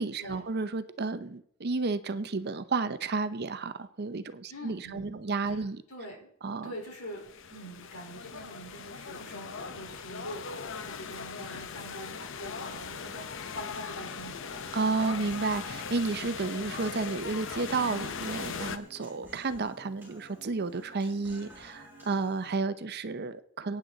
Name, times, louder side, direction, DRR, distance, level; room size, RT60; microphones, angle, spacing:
voice 1, 0.0-5.8 6.4-6.7 14.7-23.8, right 3 dB, 50° right, 0.7 m, -32 dB
voice 2, 4.5-6.3 6.6-14.6, equal, 80° left, 4.3 m, -44 dB
sound 1, 6.9-18.8, left 6 dB, 60° left, 0.8 m, -39 dB
Human voice, 14.5-22.5, equal, 10° right, 5.8 m, -51 dB
17.0 x 9.3 x 4.0 m
head